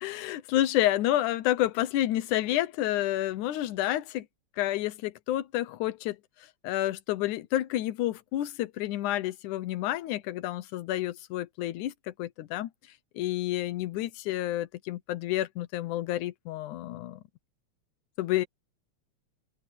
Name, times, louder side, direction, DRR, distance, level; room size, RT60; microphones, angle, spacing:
voice 1, 0.0-4.3 4.6-6.2 6.6-12.7 13.2-17.2 18.2-18.5, left 14 dB, 90° left, 2.4 m, -29 dB
omnidirectional pair, 3.4 m